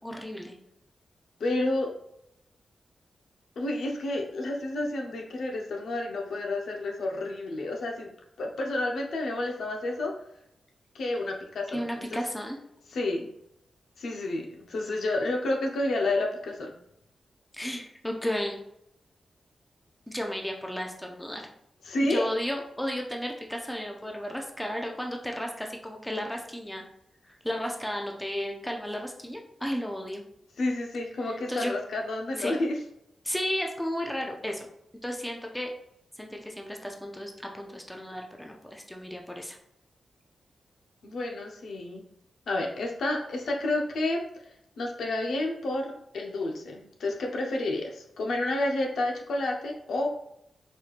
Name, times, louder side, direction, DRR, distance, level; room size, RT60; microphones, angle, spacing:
voice 1, 0.0-0.6 11.7-12.6 17.5-18.6 20.1-21.5 22.1-26.8 27.4-30.2 31.5-31.7 32.4-32.5 33.2-34.7 35.0-35.7 36.2-39.6, equal, 5° left, 1 dB, 0.5 m, -33 dB
voice 2, 1.4-1.9 3.6-8.1 8.4-10.1 10.9-11.8 12.1-12.2 12.9-13.3 14.0-16.7 21.8-22.3 30.6-32.8 41.0-42.0 42.5-44.2 44.8-50.1, left 2 dB, 80° left, 1 dB, 0.7 m, -30 dB
4.2 x 3.1 x 2.4 m, 0.79 s
wide cardioid pair, 140°, 0 cm